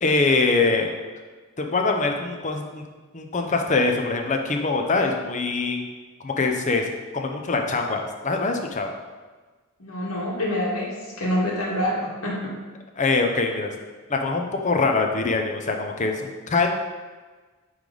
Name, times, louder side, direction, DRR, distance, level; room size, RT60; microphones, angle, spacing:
voice 1, 0.0-0.9 1.6-2.8 3.1-5.8 6.2-6.9 7.1-8.9 13.0-13.7 14.1-16.7, left 3 dB, 35° left, 3 dB, 0.6 m, -23 dB
voice 2, 9.8-12.5, equal, 75° left, -5 dB, 1.8 m, -26 dB
8.6 x 3.3 x 3.9 m, 1.3 s
head